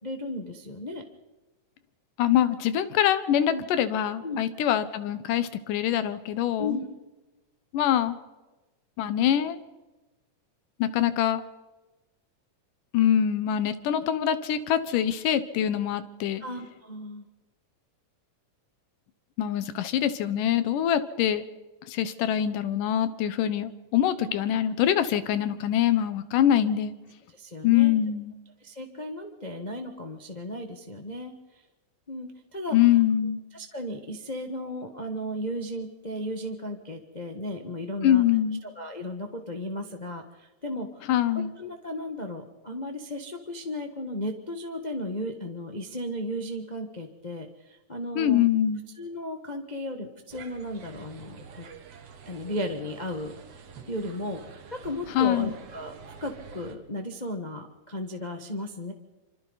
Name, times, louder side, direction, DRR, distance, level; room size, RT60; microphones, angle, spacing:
voice 1, 0.0-1.0 3.5-3.6 4.2-4.4 6.6-6.8 16.4-17.3 24.2-24.3 27.3-28.0 28.6-31.6 32.1-32.8 33.5-38.2 38.8-41.0 41.6-48.4 49.0-51.6 52.2-53.3 53.9-55.9 56.2-58.9, left 1 dB, 50° left, 4 dB, 0.5 m, -35 dB
voice 2, 2.2-6.8 7.7-8.2 9.0-9.6 10.8-11.4 12.9-16.4 19.4-21.5 21.9-26.9 27.6-28.3 32.7-33.4 38.0-38.6 41.1-41.5 48.2-48.8 55.2-55.5, left 10 dB, 85° left, 13 dB, 2.6 m, -24 dB
sound 1, 50.3-56.8, right 5 dB, 55° right, 2.5 m, -47 dB
26.5 x 26.0 x 4.1 m, 1.1 s
omnidirectional pair, 3.7 m